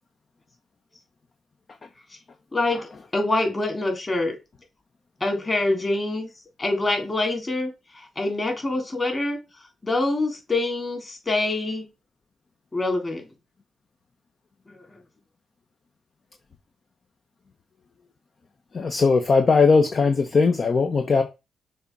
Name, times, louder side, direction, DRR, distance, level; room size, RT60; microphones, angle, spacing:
voice 1, 3.1-4.4 5.2-6.3 6.6-7.7 8.2-9.4 9.8-11.9 12.7-13.3 14.7-15.0, left 2 dB, 30° left, 3.6 m, -25 dB
voice 2, 18.7-21.2, left 4 dB, 50° left, 1.1 m, -19 dB
6.7 x 3.7 x 6.1 m
cardioid pair, 65°, 0 cm